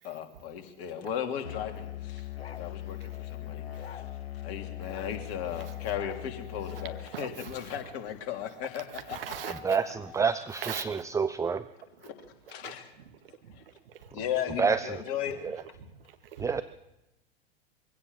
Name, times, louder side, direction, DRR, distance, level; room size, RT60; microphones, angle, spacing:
voice 1, 0.0-4.0 4.4-8.8 10.1-10.2 12.0-12.1 12.5-12.9 14.1-15.4, left 9 dB, 45° left, 3.3 m, -36 dB
Musical instrument, 1.4-7.1, left 12 dB, 80° left, 1.0 m, -40 dB
voice 2, 2.4-3.3 3.7-3.9 4.7-5.0 5.5-5.9 6.6-7.9 8.7-9.8 10.5-11.0 11.9-14.4 14.7-16.6, right 9 dB, 65° right, 2.1 m, -45 dB
voice 3, 10.1-11.7 14.6-15.0 15.4-15.6 16.4-16.6, right 5 dB, 10° right, 0.8 m, -28 dB
23.0 x 16.5 x 7.5 m
figure-of-eight pair, 90°, 31 cm